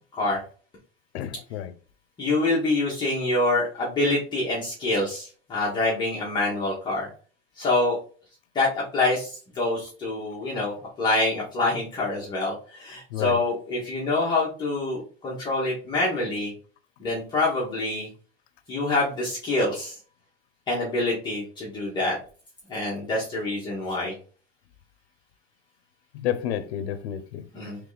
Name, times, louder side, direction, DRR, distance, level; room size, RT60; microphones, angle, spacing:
voice 1, 1.1-1.7 13.1-13.4 26.2-27.4, left 10 dB, 90° left, 0.6 m, -30 dB
voice 2, 2.2-7.1 7.6-8.0 8.5-16.5 17.0-18.1 18.7-20.0 20.7-22.2 22.7-24.1 27.5-27.8, left 2 dB, 15° left, 0.8 m, -26 dB
3.4 x 3.1 x 3.8 m
supercardioid pair, 180°, 31 cm